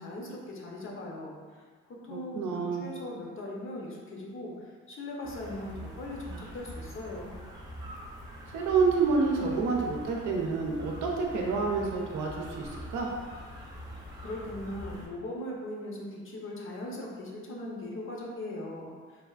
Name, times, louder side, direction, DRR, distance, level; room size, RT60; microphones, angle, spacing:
voice 1, 0.0-7.4 14.2-19.2, left 1 dB, 45° left, -2 dB, 0.7 m, -39 dB
voice 2, 2.1-2.8 8.5-13.1, right 4 dB, 75° right, 0 dB, 0.6 m, -28 dB
sound 1, 5.2-15.1, equal, 15° right, 0.6 m, -44 dB
3.3 x 2.4 x 2.3 m, 1.6 s
cardioid pair, 90°, 30 cm